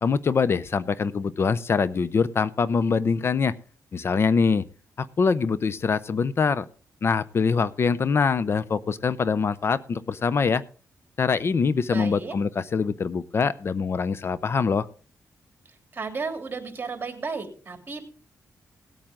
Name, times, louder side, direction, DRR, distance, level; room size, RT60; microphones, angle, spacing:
voice 1, 0.0-3.5 3.9-4.6 5.0-6.7 7.0-10.6 11.2-14.9, left 5 dB, 45° left, 16 dB, 0.6 m, -24 dB
voice 2, 11.9-12.4 15.6-18.0, right 4 dB, 35° right, 5 dB, 3.1 m, -34 dB
18.0 x 8.8 x 3.7 m, 0.40 s
cardioid pair, 105°, 6 cm